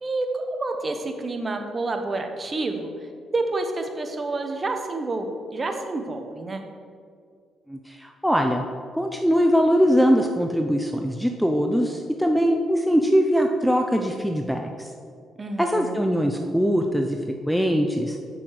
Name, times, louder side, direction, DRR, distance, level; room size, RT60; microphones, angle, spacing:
voice 1, 0.0-2.9 3.3-6.6 15.4-16.0, right 2 dB, 30° right, 5 dB, 1.0 m, -28 dB
voice 2, 7.7-8.6 9.0-14.9 15.6-17.2 17.5-18.2, equal, ahead, 3 dB, 0.6 m, -22 dB
6.9 x 5.9 x 6.4 m, 2.2 s
cardioid pair, 90°, 0 cm